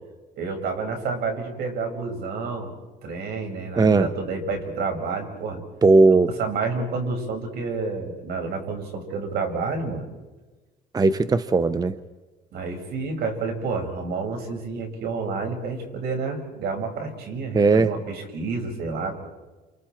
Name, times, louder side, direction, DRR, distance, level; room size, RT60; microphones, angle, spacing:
voice 1, 0.4-2.7 3.0-5.6 6.1-10.0 12.5-19.3, right 4 dB, 70° right, 4 dB, 5.3 m, -29 dB
voice 2, 3.8-4.1 5.8-6.3 10.9-11.9 17.5-17.9, right 3 dB, 25° right, 13 dB, 0.8 m, -17 dB
29.0 x 28.0 x 4.4 m, 1.2 s
cardioid pair, 110°, 17 cm